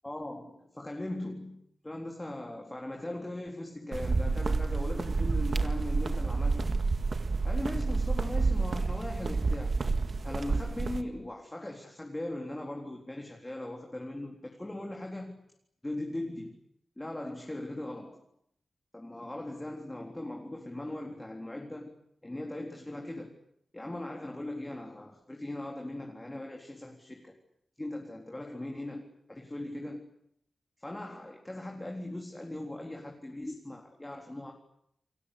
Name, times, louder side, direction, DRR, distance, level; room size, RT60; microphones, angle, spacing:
voice 1, 0.0-6.7 7.4-9.8 10.2-15.4 15.8-16.6 17.0-18.2 18.9-21.9 22.2-23.3 23.7-27.4 27.8-30.1 30.8-34.5, left 1 dB, 15° left, 1 dB, 3.9 m, -39 dB
sound 1, 3.9-11.0, right 3 dB, 45° right, 2.0 m, -29 dB
30.0 x 23.0 x 8.5 m, 0.74 s
wide cardioid pair, 125°, 0 cm